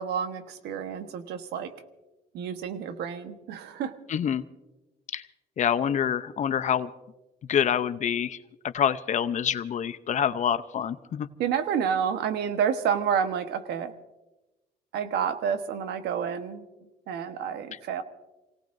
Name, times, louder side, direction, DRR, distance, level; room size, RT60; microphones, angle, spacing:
voice 1, 0.0-1.7 2.3-3.9 11.4-13.9 14.9-16.7 17.1-18.0, right 7 dB, 75° right, 9 dB, 1.2 m, -29 dB
voice 2, 4.1-4.4 5.1-5.2 5.6-6.9 7.5-8.4 8.7-11.3, left 8 dB, 45° left, 12 dB, 0.7 m, -26 dB
28.0 x 18.0 x 2.6 m, 1.0 s
cardioid pair, 110°, 17 cm